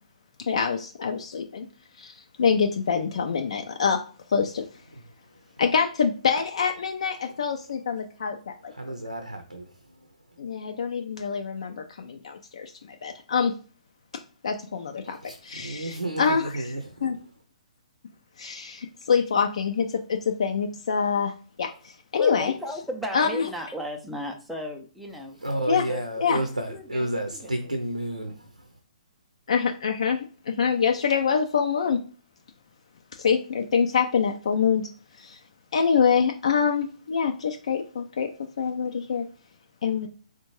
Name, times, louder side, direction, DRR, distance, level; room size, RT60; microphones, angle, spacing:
voice 1, 0.4-1.7 2.0-4.0 4.3-4.7 5.6-8.7 10.4-13.5 14.4-15.2 15.4-16.6 17.0-17.2 18.4-21.3 21.6-22.5 23.1-23.5 25.7-25.8 26.2-26.4 29.5-32.0 33.2-34.9 35.2-35.4 35.7-38.3 38.6-39.2 39.8-40.1, left 6 dB, 55° left, 0.5 m, -25 dB
voice 2, 8.7-10.1 15.0-17.1 25.4-28.7, right 1 dB, 85° right, 0.6 m, -32 dB
voice 3, 22.1-27.1 27.4-27.5, equal, ahead, 0.5 m, -36 dB
4.3 x 2.2 x 3.0 m
figure-of-eight pair, 125°, 4 cm